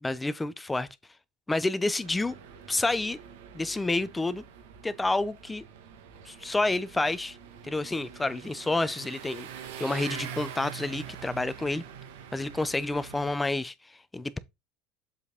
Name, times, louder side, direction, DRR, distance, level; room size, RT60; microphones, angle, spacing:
voice 1, 0.0-0.9 1.5-2.4 2.7-3.2 3.5-4.4 4.8-5.6 6.3-7.4 7.6-9.5 9.8-11.8 12.3-13.7 14.1-14.4, left 2 dB, 10° left, 0.5 m, -29 dB
sound 1, 2.0-13.4, right 9 dB, 85° right, 1.3 m, -44 dB
7.3 x 4.1 x 3.4 m
supercardioid pair, 145°, 0 cm